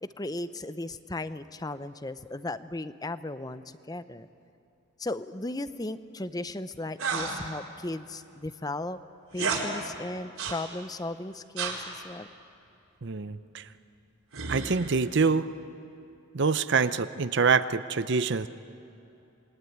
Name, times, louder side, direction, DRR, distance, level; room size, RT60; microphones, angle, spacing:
voice 1, 0.0-4.3 5.0-9.0 9.3-12.3, left 2 dB, 20° left, 13 dB, 0.7 m, -36 dB
sound 1, 7.0-7.4 9.3-9.7 10.4-10.6 11.6-11.8 14.3-15.0, right 5 dB, 85° right, 4.2 m, -31 dB
voice 2, 13.0-13.7 14.5-15.5 16.3-18.5, right 5 dB, 55° right, 13 dB, 0.7 m, -25 dB
27.5 x 21.5 x 9.4 m, 2.8 s
head